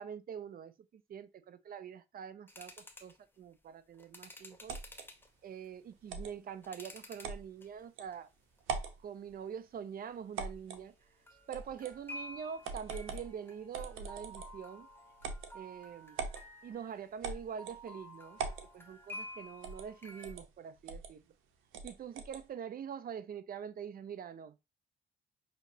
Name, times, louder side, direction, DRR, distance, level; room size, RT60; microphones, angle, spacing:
voice 1, 0.0-4.8 5.4-8.3 9.0-10.9 11.5-14.9 15.5-16.2 16.6-18.4 18.7-21.2 21.8-24.6, right 8 dB, 45° right, 0.5 m, -45 dB
sound 1, 2.5-3.2 3.9-5.3 5.9-7.3 7.6-8.1 8.6-8.8 11.3-20.3, left 1 dB, 10° left, 0.8 m, -51 dB
sound 2, 4.7-5.1 6.1-6.3 7.2-7.4 8.0-8.1 8.6-9.0 10.3-10.8 11.5-12.0 12.6-13.3 13.7-14.6 15.2-15.5 16.2-16.4 17.2-17.8 18.4-18.7 19.6-19.9 20.2-20.4 20.9-21.1 21.7-22.4, right 5 dB, 90° right, 0.7 m, -41 dB
5.6 x 3.0 x 2.7 m
cardioid pair, 90°, 20 cm